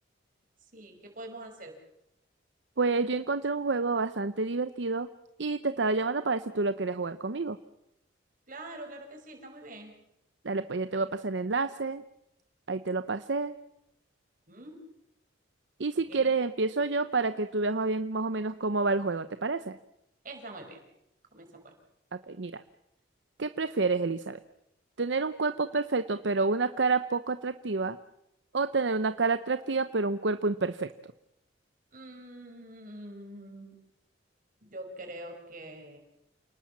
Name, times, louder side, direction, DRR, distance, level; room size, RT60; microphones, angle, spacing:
voice 1, 0.7-1.7 8.5-9.9 14.5-14.8 16.1-16.3 20.2-20.8 21.3-21.7 31.9-33.7 34.6-36.0, right 1 dB, 45° right, 3 dB, 5.8 m, -44 dB
voice 2, 2.8-5.1 5.4-7.6 10.4-12.0 12.7-13.5 15.8-19.8 22.3-22.6 23.4-24.4 25.0-28.0 28.5-30.9, right 3 dB, 70° right, 11 dB, 0.8 m, -29 dB
28.5 x 19.0 x 7.3 m, 0.81 s
head